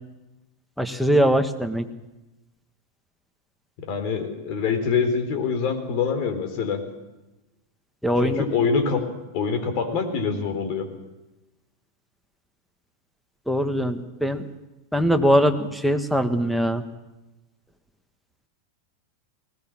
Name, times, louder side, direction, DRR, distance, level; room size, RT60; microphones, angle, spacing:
voice 1, 0.8-1.9 8.0-8.4 13.5-14.5 14.9-16.8, equal, ahead, 8 dB, 1.8 m, -21 dB
voice 2, 3.8-6.8 8.2-9.1 9.3-10.9, left 5 dB, 50° left, 8 dB, 3.9 m, -25 dB
20.0 x 18.0 x 7.5 m, 1.0 s
hypercardioid pair, 95°, 0 cm